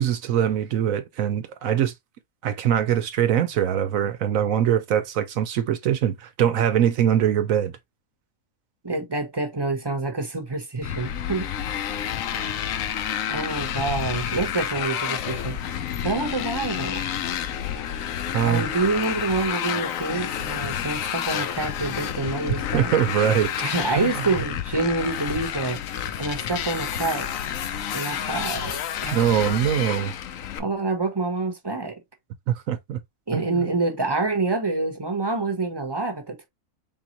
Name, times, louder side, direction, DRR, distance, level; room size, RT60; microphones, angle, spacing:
voice 1, 0.0-1.9 2.4-7.7 18.3-18.7 22.7-23.5 24.0-24.1 29.1-30.1 32.5-33.0 33.3-33.6, right 10 dB, 75° right, 1.0 m, -22 dB
voice 2, 8.8-11.5 12.3-12.6 13.3-15.6 16.0-17.1 18.5-22.9 23.6-27.3 27.9-29.2 30.6-32.0 33.3-36.5, right 3 dB, 20° right, 0.8 m, -27 dB
Motorcycle, 10.8-30.6, left 9 dB, 70° left, 1.0 m, -29 dB
4.0 x 3.6 x 2.9 m
omnidirectional pair, 1.5 m